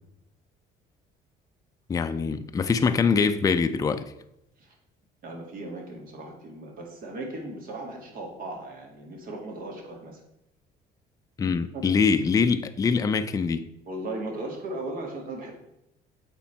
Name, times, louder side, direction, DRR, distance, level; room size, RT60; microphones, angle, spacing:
voice 1, 1.9-4.1 11.4-13.7, left 5 dB, 20° left, 0.4 m, -24 dB
voice 2, 5.2-10.2 11.4-11.8 13.9-15.5, right 2 dB, 55° right, 2.0 m, -37 dB
8.2 x 3.7 x 4.5 m
cardioid pair, 110°, 17 cm